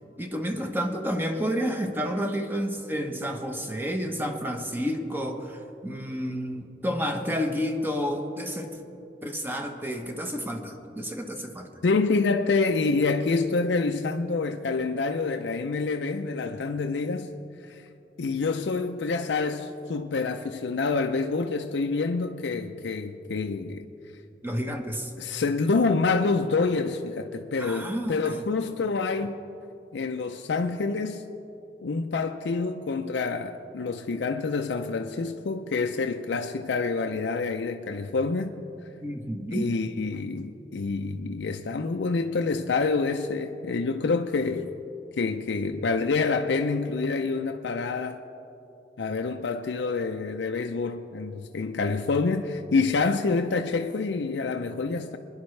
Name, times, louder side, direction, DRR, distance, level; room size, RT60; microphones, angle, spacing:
voice 1, 0.2-8.7 9.2-11.7 24.4-25.1 27.6-28.4 39.0-39.7, equal, 10° right, 0.9 m, -30 dB
voice 2, 11.8-17.3 17.7-17.8 18.2-23.9 25.2-29.4 29.9-31.2 31.8-38.6 39.5-44.7 45.2-48.2 49.0-55.2, left 4 dB, 80° left, 0.5 m, -27 dB
25.0 x 10.5 x 3.2 m
head